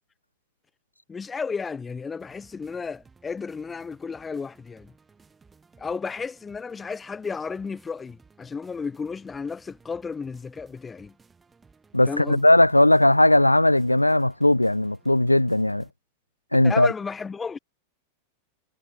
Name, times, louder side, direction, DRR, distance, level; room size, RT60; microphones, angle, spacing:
voice 1, 1.1-4.9 5.8-11.2 12.1-12.5 16.6-17.6, left 5 dB, 15° left, 1.3 m, -33 dB
sound 1, 2.2-15.9, right 4 dB, 15° right, 7.2 m, -58 dB
voice 2, 11.9-15.9 16.5-16.9, left 1 dB, 85° left, 0.4 m, -18 dB
figure-of-eight pair, 90°, 0 cm